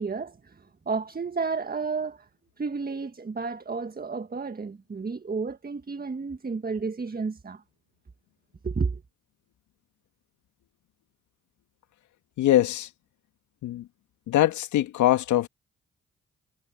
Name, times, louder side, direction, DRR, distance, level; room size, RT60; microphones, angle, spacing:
voice 1, 0.0-2.3 2.6-7.6 8.6-9.0, right 4 dB, 30° right, 1.7 m, -31 dB
voice 2, 12.4-12.9 13.6-13.9 14.3-15.5, left 13 dB, 75° left, 2.3 m, -22 dB
hypercardioid pair, 45°, 30 cm